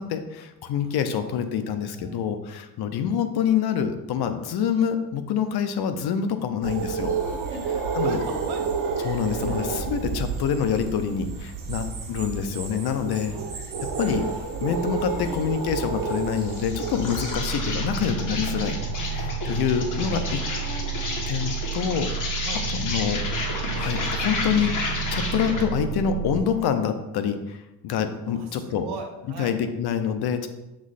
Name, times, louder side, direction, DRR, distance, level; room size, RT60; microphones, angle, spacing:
voice 1, 0.0-7.1 7.9-8.2 9.0-13.4 14.0-14.3 14.6-18.8 19.1-20.4 21.3-22.4 22.7-23.2 23.7-28.9 29.4-30.5, left 7 dB, 65° left, 9 dB, 0.8 m, -26 dB
voice 2, 0.8-1.5 1.9-2.2 7.1-8.9 9.4-9.7 13.2-13.5 15.3-15.8 20.5-21.3 21.7-21.9 22.4-22.9 23.2-23.4 28.2-29.6, right 4 dB, 65° right, 4 dB, 1.2 m, -40 dB
Howler Monkeys, 6.6-17.4, right 5 dB, 50° right, 1.5 m, -30 dB
Insect, 16.4-25.7, left 3 dB, 45° left, 1.4 m, -32 dB
sound 1, 17.3-26.4, right 5 dB, 85° left, 1.1 m, -31 dB
7.3 x 3.2 x 4.1 m, 0.97 s
cardioid pair, 90°, 42 cm